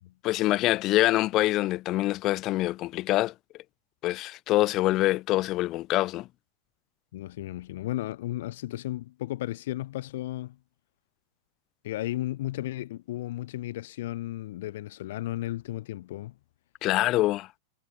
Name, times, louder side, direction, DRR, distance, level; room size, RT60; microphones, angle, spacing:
voice 1, 0.2-3.3 4.0-6.3 16.8-17.5, left 17 dB, 35° left, 0.8 m, -25 dB
voice 2, 7.1-10.6 11.8-16.3, left 15 dB, 55° left, 3.8 m, -34 dB
figure-of-eight pair, 90°, 0 cm